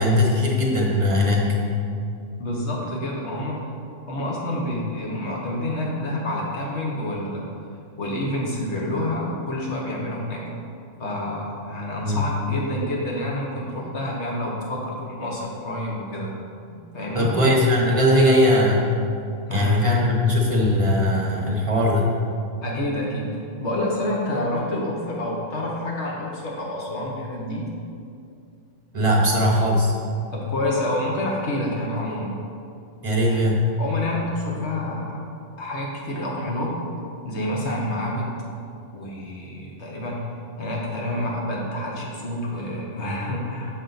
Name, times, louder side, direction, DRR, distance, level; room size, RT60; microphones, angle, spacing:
voice 1, 0.0-1.6 12.0-12.2 17.1-18.9 19.5-22.1 28.9-29.9 33.0-33.7, left 1 dB, 30° right, -2 dB, 0.9 m, -19 dB
voice 2, 2.4-3.7 4.0-7.5 8.0-10.5 11.0-16.3 16.7-17.4 19.5-19.8 22.6-27.7 30.3-32.3 33.3-33.5 33.8-35.2 35.6-36.8 37.2-38.4 38.9-40.3 40.6-43.8, left 1 dB, 65° left, -3 dB, 1.3 m, -28 dB
6.5 x 5.4 x 3.9 m, 2.5 s
omnidirectional pair, 1.3 m